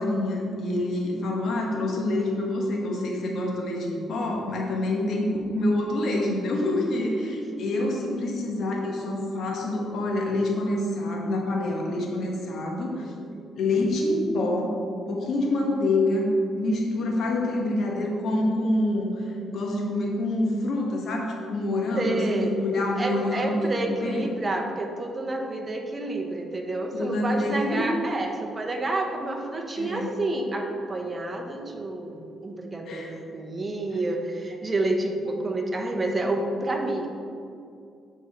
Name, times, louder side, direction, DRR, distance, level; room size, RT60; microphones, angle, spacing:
voice 1, 0.0-5.3 5.5-13.1 13.5-14.8 15.1-19.1 19.5-24.2 26.9-27.9 29.8-30.1 32.9-33.1, left 1 dB, 65° left, -1 dB, 1.3 m, -26 dB
voice 2, 7.2-7.6 12.9-13.4 21.9-22.5 23.0-37.1, right 2 dB, 30° right, 2 dB, 0.9 m, -29 dB
7.4 x 4.4 x 4.2 m, 2.4 s
cardioid pair, 90°, 0 cm